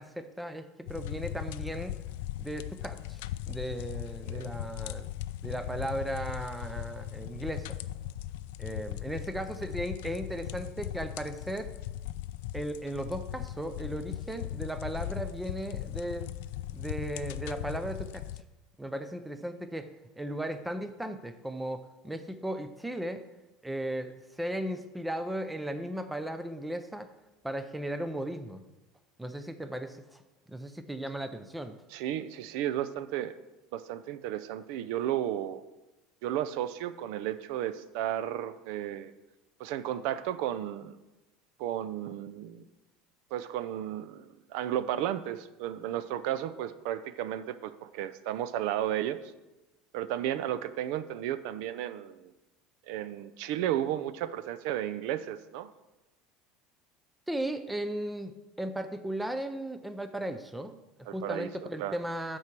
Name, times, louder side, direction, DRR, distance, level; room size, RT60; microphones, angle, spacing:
voice 1, 0.0-1.9 2.4-3.2 3.5-5.1 5.4-7.8 8.6-11.7 12.5-16.3 16.7-18.2 18.8-19.9 20.2-23.2 23.6-27.1 27.4-28.6 29.2-30.2 30.5-31.8 57.3-62.4, right 1 dB, 5° right, 9 dB, 0.4 m, -36 dB
sound 1, 0.9-18.4, left 13 dB, 85° left, 0.3 m, -38 dB
voice 2, 31.9-33.3 33.7-35.6 36.2-39.1 39.6-40.9 41.6-42.6 43.3-49.2 49.9-52.3 52.9-55.7 61.1-61.5 61.8-62.0, right 11 dB, 65° right, 14 dB, 0.4 m, -33 dB
8.6 x 4.7 x 6.0 m, 1.0 s
cardioid pair, 155°, 0 cm